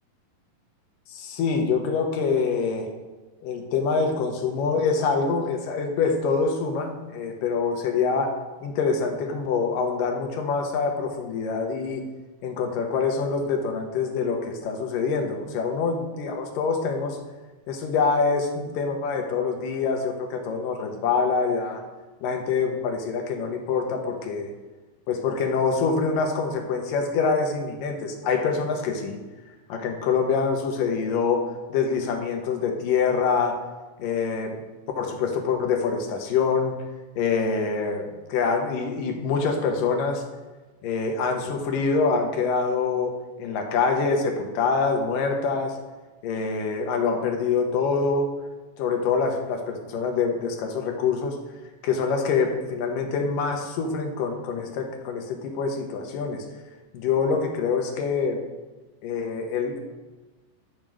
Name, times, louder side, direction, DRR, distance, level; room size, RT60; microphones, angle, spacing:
voice 1, 1.1-2.9 3.4-8.3 8.6-12.0 12.4-17.2 17.7-21.8 22.2-24.5 25.1-29.2 29.7-33.6 34.0-34.6 35.0-36.8 37.2-40.2 40.8-45.8 46.2-48.3 48.8-51.4 51.8-56.4 56.9-58.4 59.0-59.8, left 5 dB, 75° left, 3 dB, 2.5 m, -25 dB
11.0 x 5.2 x 6.2 m, 1.2 s
omnidirectional pair, 4.2 m